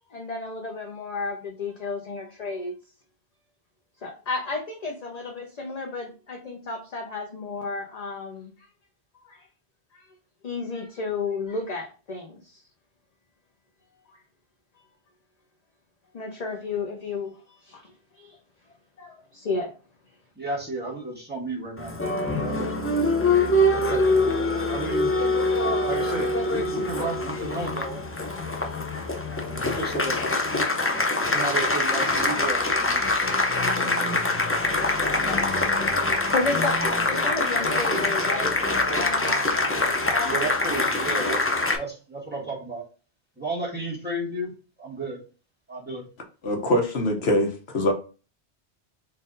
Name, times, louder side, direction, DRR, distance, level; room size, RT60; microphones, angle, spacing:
voice 1, 0.1-2.7 4.0-8.5 9.2-9.5 9.9-10.0 10.4-12.6 14.1-14.2 16.1-17.3 17.6-18.4 19.0-19.7 23.6-23.7 25.9-26.1 28.7-29.0 36.3-38.6 38.8-40.5 41.1-41.2, left 3 dB, 45° left, 0.7 m, -33 dB
voice 2, 20.3-21.9 22.2-22.8 23.7-24.0 24.7-25.1 25.8-28.0 29.2-30.7 31.2-33.0 35.0-35.4 40.2-41.4 41.7-42.8 43.4-44.5 44.8-45.2 45.7-46.1, right 2 dB, 10° right, 1.6 m, -33 dB
Applause, 21.8-41.8, left 2 dB, 20° left, 0.3 m, -24 dB
voice 3, 46.4-47.9, left 1 dB, 70° left, 1.1 m, -23 dB
4.0 x 2.6 x 3.8 m
omnidirectional pair, 1.1 m